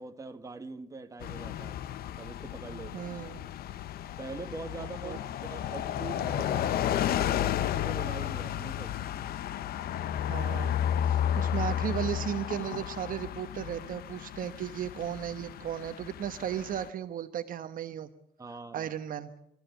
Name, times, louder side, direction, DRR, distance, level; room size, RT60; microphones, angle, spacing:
voice 1, 0.0-1.8 2.2-3.1 4.2-9.0 18.4-18.9, right 3 dB, 20° right, 1.7 m, -43 dB
sound 1, 1.2-16.9, left 10 dB, 65° left, 0.9 m, -33 dB
voice 2, 2.9-3.4 4.8-5.2 10.3-10.8 11.0-18.1 18.7-19.3, right 10 dB, 55° right, 1.1 m, -35 dB
27.5 x 14.5 x 8.2 m
cardioid pair, 110°, 17 cm